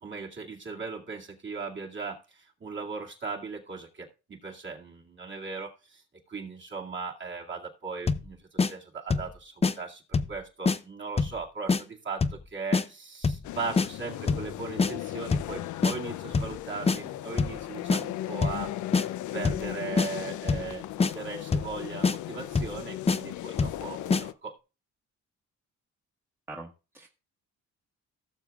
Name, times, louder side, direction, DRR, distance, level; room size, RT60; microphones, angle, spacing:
voice 1, 0.0-18.7 19.3-24.5, right 4 dB, 40° right, -2 dB, 2.3 m, -38 dB
sound 1, 8.1-8.3 8.6-8.7 9.1-9.3 9.6-9.7 10.1-10.4 10.7-10.8 11.2-11.4 11.7-11.8 12.2-12.4 12.7-12.9 13.2-13.5 13.8-13.9 14.3-14.5 14.8-14.9 15.3-15.5 15.8-16.0 16.3-16.6 16.9-17.0 17.4-17.6 17.9-18.0 18.4-18.6 18.9-19.1 19.4-19.7 20.0-20.1 20.5-20.7 21.0-21.1 21.5-21.7 22.0-22.2 22.6-22.8 23.1-23.2 23.6-23.8 24.1-24.2, left 4 dB, 20° left, 0.6 m, -24 dB
sound 2, 13.4-24.3, left 13 dB, 75° left, 0.5 m, -37 dB
voice 2, 26.5-27.1, right 2 dB, 10° right, 1 dB, 1.3 m, -43 dB
17.0 x 6.8 x 2.4 m, 0.32 s
cardioid pair, 90°, 30 cm